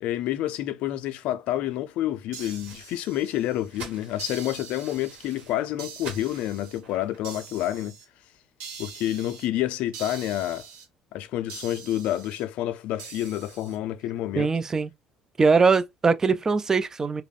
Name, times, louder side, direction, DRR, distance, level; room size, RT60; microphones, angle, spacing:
voice 1, 0.0-7.9 8.8-10.7 11.1-14.5, left 13 dB, 70° left, 0.4 m, -29 dB
sound 1, 2.3-7.4, right 3 dB, 70° right, 1.1 m, -47 dB
sound 2, 2.3-3.7 4.2-5.3 5.8-6.8 7.2-8.0 8.6-9.5 9.9-10.8 11.5-12.4 13.0-13.8, right 6 dB, 85° right, 0.8 m, -43 dB
voice 2, 14.4-14.9 15.4-17.2, right 4 dB, 25° right, 0.3 m, -21 dB
2.3 x 2.0 x 3.3 m
supercardioid pair, 85°, 2 cm